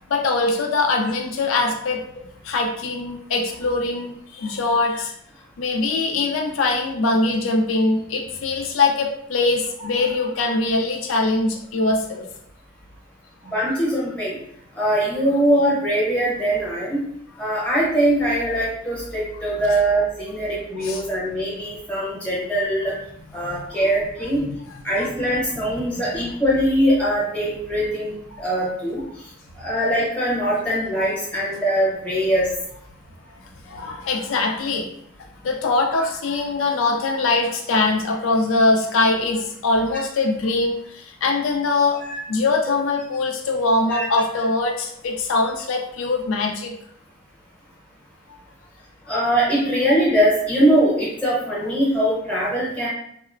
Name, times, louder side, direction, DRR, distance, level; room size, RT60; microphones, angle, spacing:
voice 1, 0.1-2.0 2.4-5.1 5.6-12.2 20.8-21.0 25.0-25.1 25.9-26.0 33.6-34.9 35.4-42.0 42.3-46.7, left 3 dB, 85° left, 1 dB, 0.4 m, -22 dB
voice 2, 13.4-14.4 14.8-17.0 17.4-22.9 23.3-24.4 24.8-28.1 28.4-29.0 29.6-32.5 35.9-36.0 42.0-42.2 43.9-44.0 49.1-52.9, right 1 dB, 5° left, -7 dB, 0.8 m, -22 dB
2.9 x 2.0 x 2.4 m, 0.72 s
head